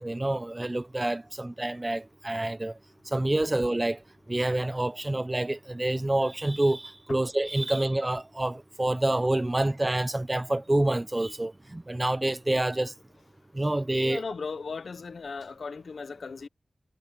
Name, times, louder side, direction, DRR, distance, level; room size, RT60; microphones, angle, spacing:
voice 1, 0.0-2.7 3.1-4.0 4.3-12.9 13.5-14.2, right 1 dB, 20° right, 0.5 m, -27 dB
voice 2, 14.0-16.5, left 4 dB, 75° left, 0.6 m, -37 dB
wide cardioid pair, 85°, 0 cm